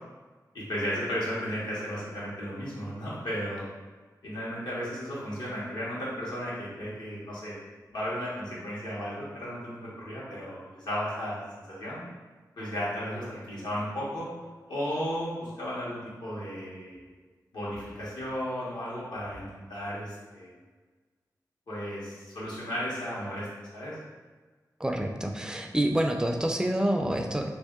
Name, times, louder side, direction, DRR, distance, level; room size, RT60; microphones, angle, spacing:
voice 1, 0.5-3.6 4.2-7.6 7.9-11.4 11.7-12.0 12.6-14.3 14.7-15.3 15.6-17.1 17.5-20.5 21.7-23.5 23.7-23.9, equal, 80° left, -8 dB, 1.3 m, -34 dB
voice 2, 24.8-27.5, right 1 dB, 10° right, 3 dB, 0.3 m, -27 dB
3.1 x 2.7 x 3.6 m, 1.3 s
wide cardioid pair, 100°, 7 cm